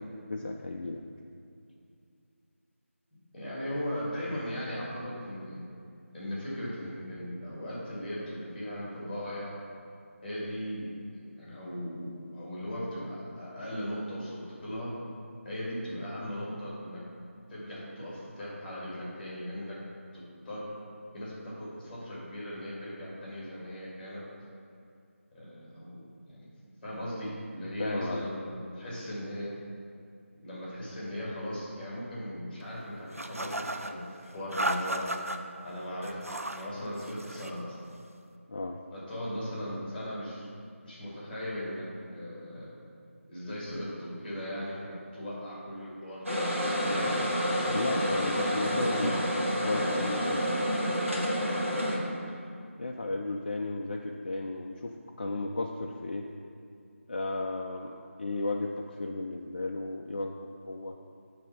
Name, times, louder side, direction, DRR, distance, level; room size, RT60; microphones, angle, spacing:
voice 1, 0.3-1.0 4.3-4.4 27.8-28.2 38.5-38.8 47.7-49.2 49.6-50.5 52.8-56.3 57.1-61.0, left 2 dB, 40° left, 1 dB, 0.4 m, -34 dB
voice 2, 3.1-5.6 6.1-9.5 10.2-14.9 15.4-17.0 17.5-19.8 20.1-20.7 21.1-24.2 25.3-26.5 26.8-29.5 30.4-35.1 35.6-36.2 36.4-37.8 38.9-40.5 40.8-42.7 43.3-46.4 46.8-47.2 47.5-47.7 48.6-49.2 50.7-50.8 51.7-52.1, equal, 10° left, -7 dB, 1.8 m, -38 dB
sound 1, 33.1-33.9 34.5-35.4 36.0-36.7 37.0-37.6, right 1 dB, 80° right, 0.5 m, -34 dB
sound 2, 46.3-52.0, equal, 65° right, 1.6 m, -29 dB
8.5 x 3.4 x 5.6 m, 2.5 s
figure-of-eight pair, 165°, 8 cm